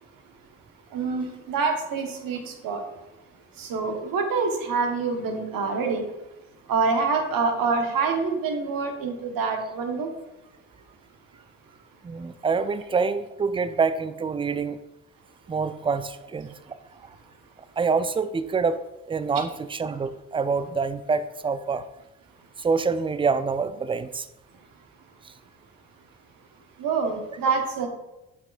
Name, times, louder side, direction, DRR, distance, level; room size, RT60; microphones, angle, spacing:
voice 1, 0.9-2.8 3.6-6.1 6.7-10.1 26.8-27.9, right 4 dB, 60° right, 4 dB, 1.2 m, -26 dB
voice 2, 12.0-14.8 15.5-16.8 17.8-18.8 19.1-21.8 22.6-24.3 25.2-25.3, right 5 dB, 15° right, 13 dB, 0.3 m, -26 dB
7.3 x 6.0 x 2.5 m, 0.99 s
hypercardioid pair, 50°, 39 cm